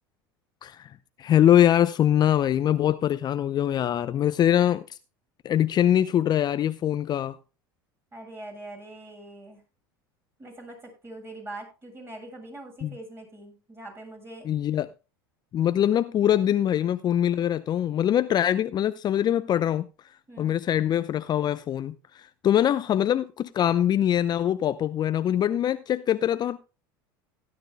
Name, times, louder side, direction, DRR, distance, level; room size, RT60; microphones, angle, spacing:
voice 1, 0.6-0.9 1.2-5.0 5.4-7.4 12.8-12.9 14.4-14.9 15.5-19.9 20.4-26.6, left 11 dB, 35° left, 0.6 m, -23 dB
voice 2, 8.1-9.6 10.4-14.5 20.3-20.6, right 2 dB, 20° right, 7.3 m, -43 dB
17.0 x 11.5 x 2.2 m
hypercardioid pair, 85°, 12 cm